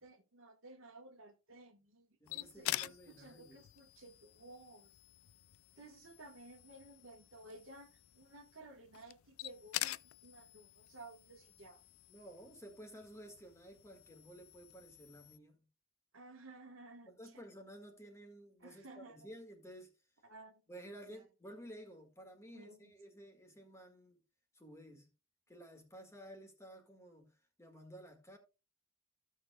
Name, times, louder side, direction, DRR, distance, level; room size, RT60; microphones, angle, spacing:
voice 1, 0.0-2.1 2.3-4.9 5.8-11.8 16.1-17.4 18.6-19.2 20.2-21.2 22.5-22.9, right 2 dB, 70° right, 1.3 m, -56 dB
voice 2, 2.2-3.6 12.1-15.7 17.1-19.9 20.7-24.2 24.5-25.1 25.5-28.4, right 1 dB, 15° left, 1.7 m, -54 dB
sound 1, 2.3-15.4, left 15 dB, 85° left, 0.4 m, -47 dB
15.0 x 6.5 x 2.3 m
head